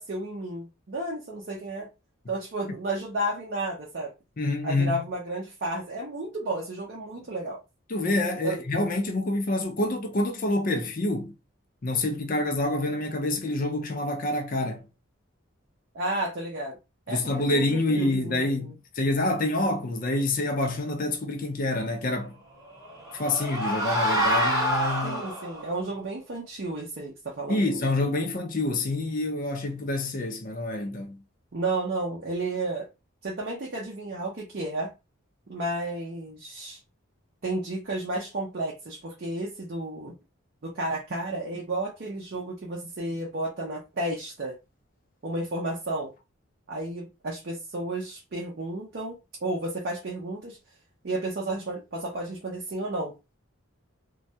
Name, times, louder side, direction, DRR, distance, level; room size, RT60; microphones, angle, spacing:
voice 1, 0.0-1.9 2.3-4.1 4.6-7.6 8.4-8.6 15.9-16.8 17.1-17.2 17.5-17.6 17.9-18.7 25.0-27.8 31.5-32.9 33.2-34.9 35.5-36.8 37.4-40.1 40.6-44.5 45.2-46.1 46.7-50.6 51.0-53.1, right 2 dB, 50° right, 0.5 m, -32 dB
voice 2, 4.4-5.0 7.9-11.3 11.8-14.9 17.1-22.3 23.1-25.2 27.5-31.2, left 2 dB, 40° left, 0.5 m, -27 dB
sound 1, 22.7-25.7, equal, 15° right, 0.9 m, -26 dB
2.2 x 2.1 x 2.6 m
head